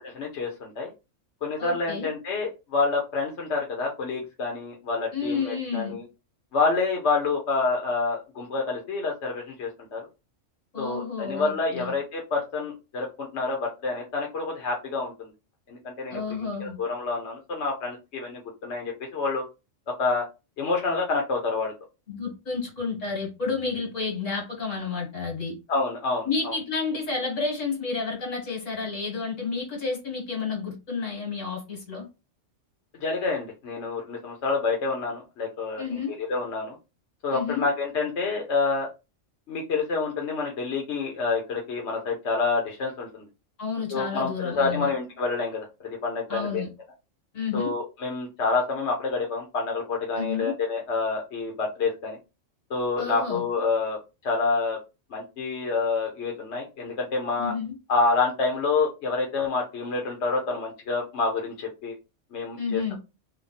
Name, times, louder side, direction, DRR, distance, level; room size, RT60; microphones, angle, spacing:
voice 1, 0.2-0.9 1.4-6.0 6.5-10.1 10.8-15.3 15.7-16.2 16.6-19.4 20.0-20.2 20.6-21.7 25.7-26.5 33.0-35.8 36.3-36.7 37.2-38.9 39.5-43.3 43.9-45.6 46.0-46.6 47.5-52.2 52.7-54.0 54.2-54.8 55.1-57.5 57.9-61.9 62.3-63.0, left 4 dB, 65° left, 1.2 m, -28 dB
voice 2, 1.6-2.1 5.1-6.0 10.7-11.9 16.1-16.8 22.1-25.5 26.2-32.1 35.8-36.1 37.3-37.7 43.6-44.9 46.3-46.7 47.3-47.7 50.2-50.5 53.0-53.4 57.4-57.7 62.6-63.0, left 5 dB, 80° left, 2.0 m, -30 dB
3.5 x 2.2 x 3.9 m
omnidirectional pair, 1.3 m